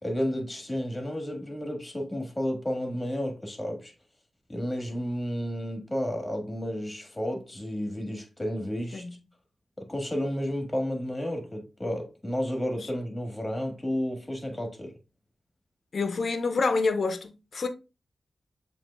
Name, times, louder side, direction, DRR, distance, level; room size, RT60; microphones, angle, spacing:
voice 1, 0.0-3.9 4.5-9.0 9.8-14.9, equal, 15° left, 1.5 m, -32 dB
voice 2, 15.9-17.7, left 4 dB, 65° left, 0.6 m, -27 dB
7.2 x 3.0 x 2.2 m
wide cardioid pair, 85°, 0 cm